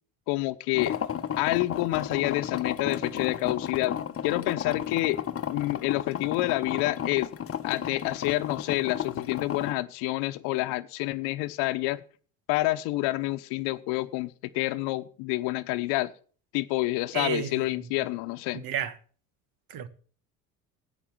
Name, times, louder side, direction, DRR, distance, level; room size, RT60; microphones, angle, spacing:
voice 1, 0.3-1.0 1.4-5.2 5.5-7.3 7.6-12.0 12.5-16.1 16.5-18.6, left 19 dB, 70° left, 1.0 m, -28 dB
sound 1, 0.7-9.7, left 9 dB, 35° left, 1.0 m, -33 dB
voice 2, 17.1-17.9 18.5-18.9 19.7-19.9, right 7 dB, 55° right, 1.4 m, -32 dB
11.5 x 9.0 x 7.2 m
hypercardioid pair, 70°, 41 cm